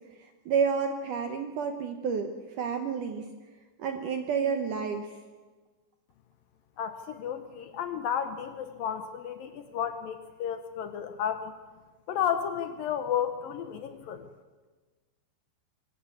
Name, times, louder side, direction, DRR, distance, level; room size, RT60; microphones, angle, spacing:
voice 1, 0.2-3.2 3.8-5.1, right 6 dB, 75° right, 6 dB, 1.9 m, -30 dB
voice 2, 6.8-11.5 12.1-14.3, left 8 dB, 75° left, 8 dB, 2.1 m, -32 dB
23.5 x 15.5 x 8.4 m, 1.3 s
omnidirectional pair, 5.2 m